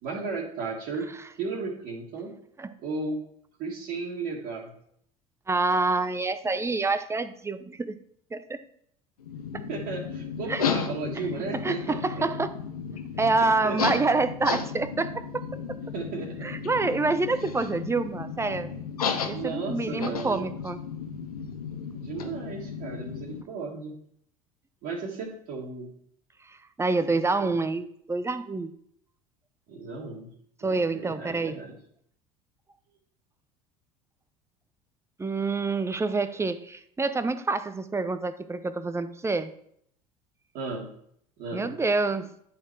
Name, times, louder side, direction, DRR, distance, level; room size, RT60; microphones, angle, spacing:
voice 1, 0.0-1.1 1.4-2.3 2.8-3.2 3.6-4.7 9.5-12.2 13.3-13.9 15.9-16.5 17.6-17.7 19.3-20.5 21.9-23.9 24.8-25.9 27.3-27.5 29.7-30.3 30.6-31.7 40.5-40.9 41.4-41.7, right 4 dB, 55° right, -5 dB, 1.8 m, -35 dB
voice 2, 5.5-7.9 8.3-8.6 10.5-10.6 11.6-12.5 13.2-15.4 15.7-15.8 16.4-18.7 19.2-20.8 26.8-28.7 30.6-31.6 35.2-39.5 41.5-42.3, right 3 dB, 15° right, 12 dB, 0.7 m, -27 dB
sound 1, 9.2-23.4, left 6 dB, 80° left, 0.7 m, -34 dB
10.5 x 4.4 x 4.6 m, 0.68 s
figure-of-eight pair, 65°, 19 cm